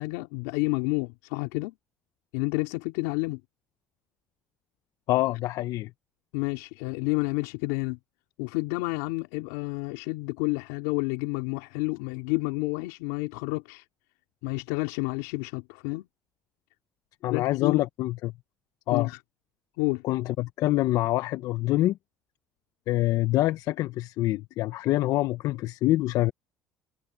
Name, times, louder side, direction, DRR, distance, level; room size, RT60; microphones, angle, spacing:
voice 1, 0.0-1.7 2.3-3.4 6.3-8.0 8.4-13.8 14.4-16.1 17.3-17.8 18.9-19.2 19.8-20.0, left 24 dB, 85° left, 3.5 m, -30 dB
voice 2, 5.1-5.9 17.2-18.3 18.9-19.1 20.0-22.0 22.9-26.3, left 16 dB, 70° left, 0.9 m, -25 dB
supercardioid pair, 75°, 6 cm